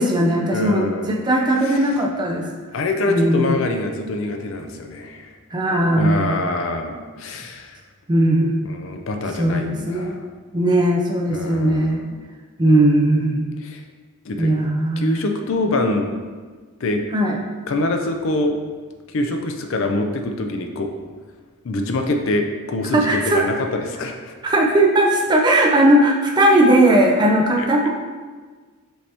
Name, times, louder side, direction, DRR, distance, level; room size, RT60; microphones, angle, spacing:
voice 1, 0.0-2.4 3.1-3.6 5.5-6.3 8.1-8.6 9.4-10.2 10.5-12.0 12.6-13.5 14.4-15.1 17.1-17.4 22.9-23.4 24.4-27.9, right 1 dB, 20° right, 0 dB, 0.4 m, -18 dB
voice 2, 0.5-1.1 1.6-1.8 2.7-5.3 5.9-7.8 8.6-10.2 11.3-12.2 13.6-13.8 14.2-14.5 15.0-16.2 16.8-17.0 17.7-18.5 19.1-20.9 21.6-24.3 27.6-27.9, left 2 dB, 60° left, 4 dB, 0.4 m, -25 dB
5.3 x 2.9 x 3.3 m, 1.4 s
head